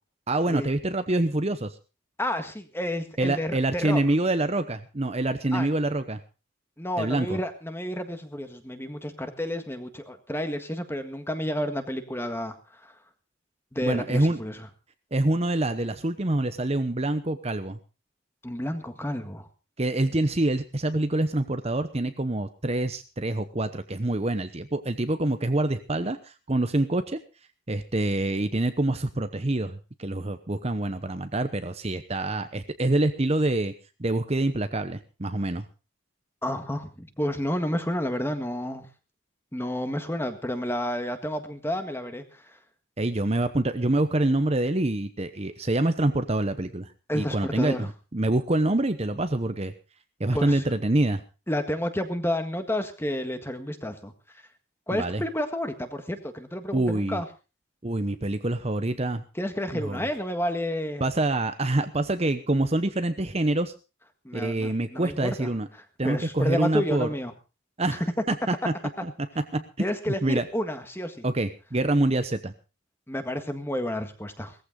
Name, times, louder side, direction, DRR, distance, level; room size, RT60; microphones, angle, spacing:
voice 1, 0.3-1.8 3.2-6.2 7.0-7.4 13.8-14.4 15.1-17.8 19.8-27.2 27.7-33.7 34.0-35.7 43.0-49.7 50.2-51.2 54.9-55.2 56.7-57.2 57.8-59.2 59.7-60.0 61.0-63.7 64.3-65.7 66.0-67.1 67.8-68.7 69.0-69.1 69.5-69.6 70.1-70.5 71.2-72.5, right 2 dB, 30° right, 9 dB, 0.9 m, -26 dB
voice 2, 2.2-4.0 5.5-5.7 6.8-12.5 12.8-12.9 13.7-14.7 18.4-19.5 36.4-38.9 39.5-42.6 47.1-47.9 50.3-50.6 51.5-54.1 54.9-57.2 59.3-61.1 64.2-65.5 66.0-67.3 69.5-71.2 73.1-74.5, left 1 dB, 10° left, 8 dB, 1.7 m, -30 dB
18.5 x 15.0 x 3.8 m, 0.32 s
head